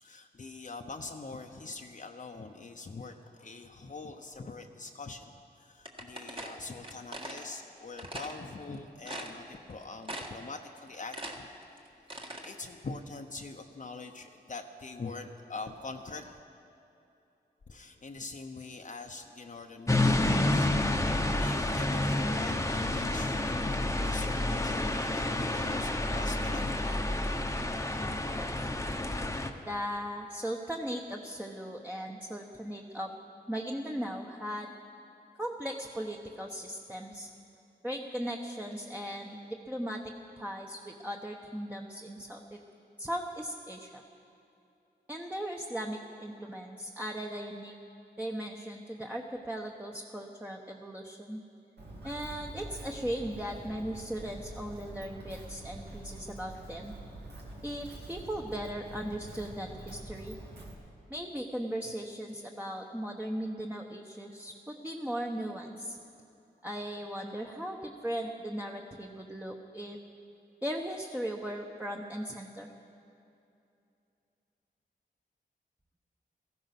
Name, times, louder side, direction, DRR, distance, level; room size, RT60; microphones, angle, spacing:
voice 1, 0.0-11.5 12.4-16.4 17.7-20.7 21.0-27.0, left 3 dB, 50° left, 4 dB, 0.9 m, -43 dB
sound 1, 5.8-7.5 8.0-8.4 8.7-8.8 9.0-9.7 10.0-10.5 10.8-12.5, right 1 dB, 30° right, 1.7 m, -41 dB
sound 2, 19.9-29.5, left 1 dB, 15° left, 1.0 m, -29 dB
voice 2, 28.4-29.1 29.7-33.1 33.5-34.7 35.4-37.3 37.8-40.0 40.4-42.6 43.0-44.0 45.1-47.7 48.2-51.4 52.0-56.9 57.6-60.4 61.1-66.0 66.6-70.0 70.6-72.7, equal, 10° right, 0 dB, 1.0 m, -38 dB
Walk footsteps, 51.8-60.7, right 1 dB, 90° right, 2.3 m, -46 dB
16.5 x 14.5 x 6.0 m, 2.7 s
cardioid pair, 65°, 17 cm